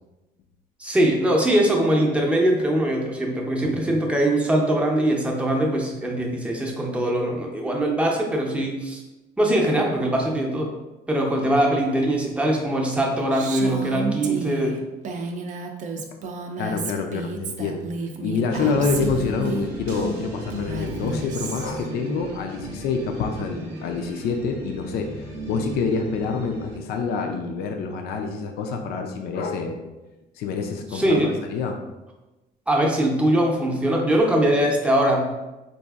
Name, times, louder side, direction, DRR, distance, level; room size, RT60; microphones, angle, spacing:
voice 1, 0.8-9.0 9.4-10.7 11.1-14.7 18.7-18.8 30.9-31.3 32.7-35.2, right 1 dB, 5° right, -1 dB, 0.6 m, -22 dB
Female speech woman speaking, 13.3-19.7 20.5-21.9, right 3 dB, 50° right, 0.4 m, -32 dB
voice 2, 16.6-17.9 18.2-29.8 30.4-31.8, left 5 dB, 65° left, 4 dB, 0.4 m, -27 dB
sound 1, 18.5-26.8, right 1 dB, 80° right, 0.7 m, -35 dB
4.0 x 2.5 x 2.4 m, 1.1 s
cardioid pair, 110°, 17 cm